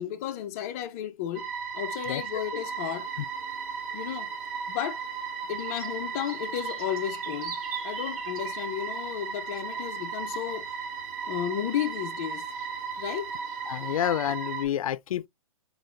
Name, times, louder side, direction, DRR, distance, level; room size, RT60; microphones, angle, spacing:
voice 1, 0.0-1.5 1.7-3.1 3.9-4.3 4.7-5.0 5.5-7.5 7.8-10.7 11.3-12.4 13.0-13.3, left 11 dB, 25° left, 0.6 m, -33 dB
sound 1, 1.4-14.7, right 6 dB, 30° right, 1.2 m, -35 dB
sound 2, 2.6-14.1, right 6 dB, 75° right, 3.7 m, -48 dB
voice 2, 13.7-15.3, left 11 dB, 75° left, 0.4 m, -29 dB
5.0 x 3.9 x 2.6 m
hypercardioid pair, 165°, 18 cm